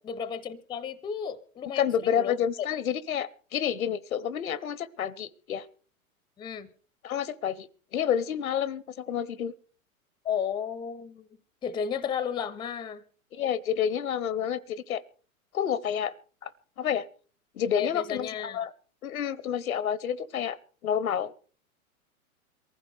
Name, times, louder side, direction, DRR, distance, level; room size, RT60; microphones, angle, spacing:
voice 1, 0.0-2.4 6.4-6.7 10.2-11.3 11.6-13.0 17.8-18.6, left 7 dB, 10° left, 19 dB, 0.6 m, -33 dB
voice 2, 1.8-5.7 7.0-7.7 7.9-9.5 13.3-15.0 15.5-16.1 16.4-16.5 16.8-17.1 17.5-18.7 19.0-20.6 20.8-21.3, left 9 dB, 75° left, 23 dB, 0.9 m, -29 dB
23.0 x 15.0 x 3.3 m, 0.40 s
hypercardioid pair, 110°, 43 cm